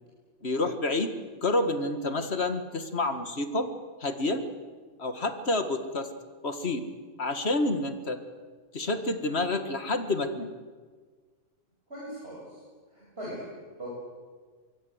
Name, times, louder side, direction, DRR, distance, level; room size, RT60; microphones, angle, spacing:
voice 1, 0.4-1.1 1.4-3.7 4.0-4.4 5.0-6.1 6.4-6.8 7.2-8.2 8.7-10.5, left 2 dB, 50° left, 9 dB, 2.0 m, -28 dB
voice 2, 11.9-12.6 12.9-13.4 13.8-13.9, right 1 dB, 45° right, -6 dB, 8.1 m, -40 dB
25.0 x 23.5 x 8.1 m, 1.5 s
omnidirectional pair, 1.5 m